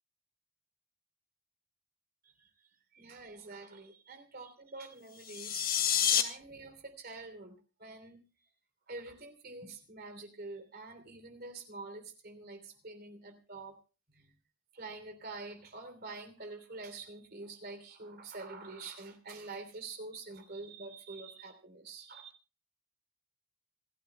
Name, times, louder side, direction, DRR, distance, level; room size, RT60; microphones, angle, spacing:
voice 1, 2.2-5.7 6.1-8.2 8.9-13.8 14.1-14.3 14.7-22.3, right 3 dB, 45° right, 7 dB, 3.2 m, -46 dB
sound 1, 5.2-6.2, left 9 dB, 45° left, 1.6 m, -28 dB
27.0 x 12.5 x 2.2 m, 0.34 s
head